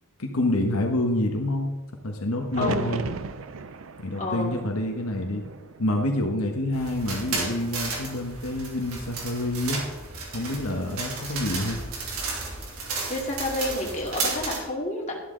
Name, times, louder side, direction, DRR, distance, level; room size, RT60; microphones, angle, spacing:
voice 1, 0.2-1.7 2.0-3.0 4.0-5.4 5.8-9.8 10.3-11.8, left 1 dB, 75° left, 2 dB, 1.3 m, -27 dB
sound 1, 2.5-6.6 6.9-7.7 9.6-10.0, right 3 dB, 65° right, 0.6 m, -37 dB
voice 2, 2.6-3.0 4.2-4.5 12.9-15.1, left 1 dB, 30° left, -2 dB, 2.4 m, -30 dB
sound 2, 6.7-14.6, right 3 dB, 80° right, 2.9 m, -33 dB
12.5 x 11.5 x 3.9 m, 1.1 s
head